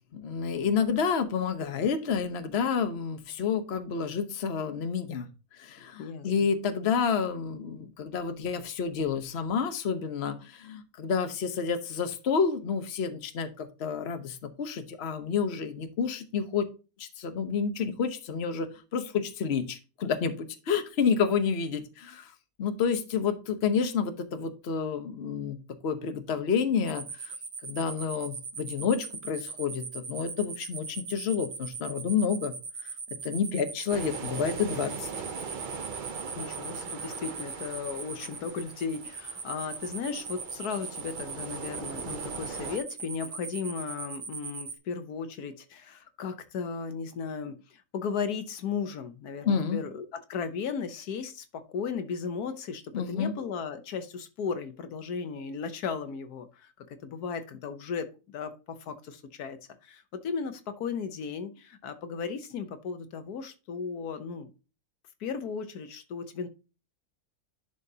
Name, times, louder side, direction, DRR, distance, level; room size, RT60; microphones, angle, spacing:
voice 1, 0.1-5.3 5.5-16.7 17.0-22.3 22.6-27.3 27.6-32.6 32.8-32.9 33.2-35.1 49.4-49.8 52.9-53.4, left 6 dB, 45° left, 1.1 m, -29 dB
voice 2, 6.0-6.3 36.3-64.5 65.2-66.5, left 6 dB, 85° left, 1.5 m, -36 dB
sound 1, 26.9-44.7, right 5 dB, 75° right, 1.8 m, -39 dB
sound 2, 33.9-42.8, right 5 dB, 45° right, 0.6 m, -41 dB
11.0 x 5.0 x 2.8 m
omnidirectional pair, 1.6 m